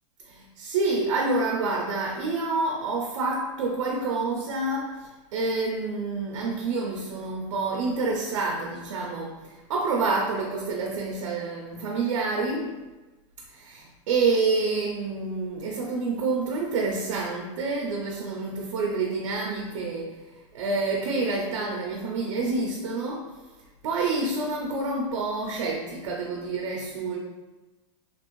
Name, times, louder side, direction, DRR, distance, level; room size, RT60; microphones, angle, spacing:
voice 1, 0.2-12.8 13.5-20.1 20.5-23.3 23.8-27.2, right 3 dB, 75° right, -1 dB, 0.5 m, -28 dB
2.9 x 2.5 x 3.0 m, 1.2 s
supercardioid pair, 180°, 17 cm